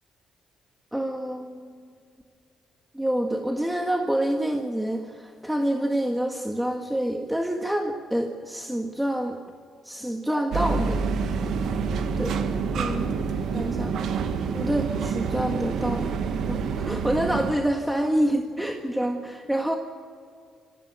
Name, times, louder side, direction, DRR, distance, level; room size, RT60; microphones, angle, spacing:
voice 1, 0.9-1.9 2.9-9.4 9.8-11.0 12.2-12.4 12.8-13.1 13.5-13.9 14.5-16.2 16.5-19.8, right 1 dB, 5° right, 2 dB, 1.8 m, -27 dB
sound 1, 10.5-17.5, right 5 dB, 75° right, 1.9 m, -27 dB
24.0 x 15.5 x 9.2 m, 2.2 s
cardioid pair, 90°, 0 cm